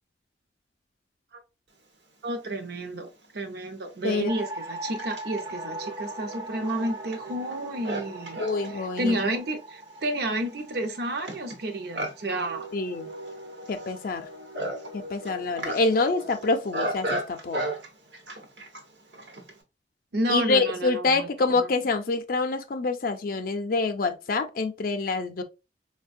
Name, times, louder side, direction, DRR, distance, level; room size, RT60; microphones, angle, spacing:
voice 1, 2.2-8.4 8.7-12.7 20.1-21.7, right 1 dB, 65° right, 0.6 m, -31 dB
Livestock farm animals working animals, 2.8-2.9 3.7-19.6, right 1 dB, 85° right, 1.0 m, -37 dB
sound 1, 4.3-14.6, right 1 dB, 20° right, 0.5 m, -41 dB
voice 2, 8.4-9.2 12.7-13.1 13.7-14.3 14.9-17.6 20.3-25.4, left 3 dB, 55° left, 0.4 m, -26 dB
4.2 x 2.2 x 2.5 m
head